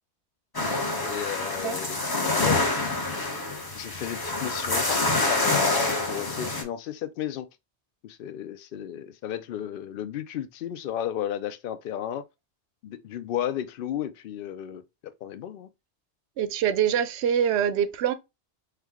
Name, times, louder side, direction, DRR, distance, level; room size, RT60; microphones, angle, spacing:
sound 1, 0.5-6.6, left 2 dB, 25° left, 0.7 m, -27 dB
voice 1, 1.0-2.9 3.7-7.5 8.0-12.2 12.8-15.7, left 10 dB, 60° left, 0.6 m, -33 dB
voice 2, 16.4-18.1, right 9 dB, 75° right, 0.8 m, -24 dB
4.6 x 2.2 x 3.5 m
omnidirectional pair, 1.2 m